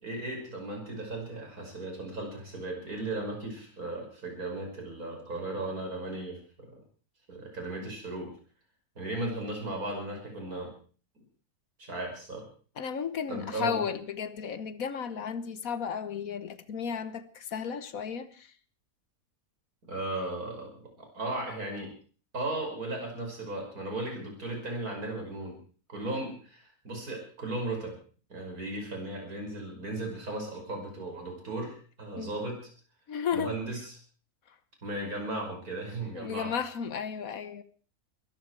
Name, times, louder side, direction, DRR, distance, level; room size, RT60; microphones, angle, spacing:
voice 1, 0.0-6.8 7.3-8.3 9.0-10.7 11.8-12.4 13.3-13.8 19.9-20.7 21.0-21.9 22.3-25.6 25.9-27.9 28.3-32.6 33.3-33.9 34.8-36.5, right 2 dB, 75° right, 6.2 m, -36 dB
voice 2, 12.8-18.5 32.2-32.4 33.1-33.6 36.1-37.6, left 7 dB, 70° left, 1.5 m, -34 dB
21.5 x 14.5 x 4.7 m
omnidirectional pair, 1.6 m